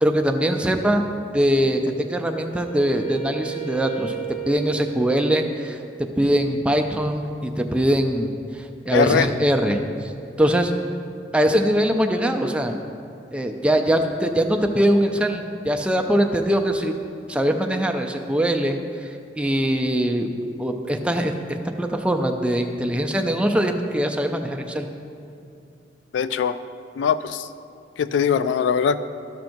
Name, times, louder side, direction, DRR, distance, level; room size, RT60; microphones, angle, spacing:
voice 1, 0.0-1.0 1.3-4.1 4.5-5.8 6.2-10.1 10.4-10.7 11.3-12.8 13.3-16.9 17.3-20.3 20.6-21.3 21.8-24.9, equal, 5° right, 4 dB, 0.4 m, -22 dB
Wind instrument woodwind instrument, 1.5-5.9, right 15 dB, 40° left, 1.3 m, -35 dB
voice 2, 8.9-9.3 26.1-26.6 27.0-27.5 28.0-29.0, left 7 dB, 80° left, 12 dB, 0.3 m, -21 dB
13.0 x 5.8 x 2.6 m, 2.6 s
head